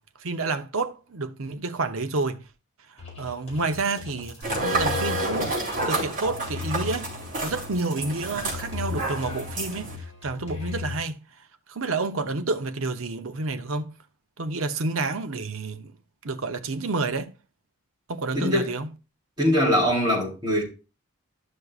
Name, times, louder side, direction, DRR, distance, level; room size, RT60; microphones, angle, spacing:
voice 1, 0.2-2.4 3.2-5.5 5.9-7.1 7.4-11.2 11.7-14.0 14.4-15.9 16.2-17.3 18.1-18.9, right 3 dB, 65° right, 0.8 m, -29 dB
sound 1, 3.0-11.0, left 5 dB, 30° left, 5.0 m, -37 dB
sound 2, 4.4-10.0, right 2 dB, 35° right, 3.7 m, -29 dB
voice 2, 18.3-18.8 19.4-20.6, equal, 20° right, 3.4 m, -22 dB
12.0 x 6.4 x 2.4 m
head